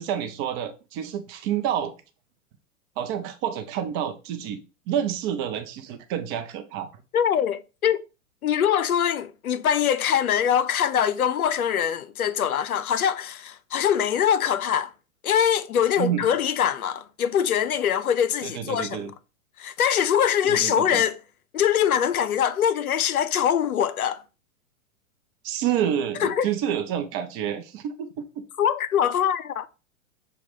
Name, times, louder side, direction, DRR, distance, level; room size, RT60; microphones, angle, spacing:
voice 1, 0.0-1.9 3.0-4.6 4.9-6.9 16.0-16.2 18.4-19.1 20.4-21.0 25.4-28.1, right 9 dB, 30° right, 0.6 m, -28 dB
voice 2, 7.1-8.0 8.4-14.9 15.2-19.1 19.6-21.2 21.5-24.2 26.2-26.5 28.6-29.7, left 9 dB, 85° left, 0.6 m, -23 dB
6.1 x 2.3 x 3.6 m
hypercardioid pair, 110°, 42 cm